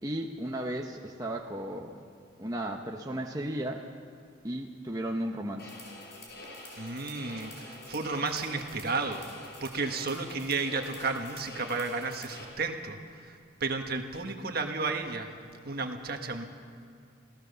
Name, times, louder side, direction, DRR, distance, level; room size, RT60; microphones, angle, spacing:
voice 1, 0.0-1.9 2.4-3.8 4.4-5.7, right 1 dB, 20° right, 1 dB, 1.0 m, -34 dB
sound 1, 5.6-12.4, left 2 dB, 55° left, 5.3 m, -46 dB
voice 2, 6.7-9.2 9.6-15.3 15.6-16.5, right 3 dB, 50° right, 4 dB, 1.7 m, -33 dB
27.5 x 16.5 x 6.9 m, 2.4 s
head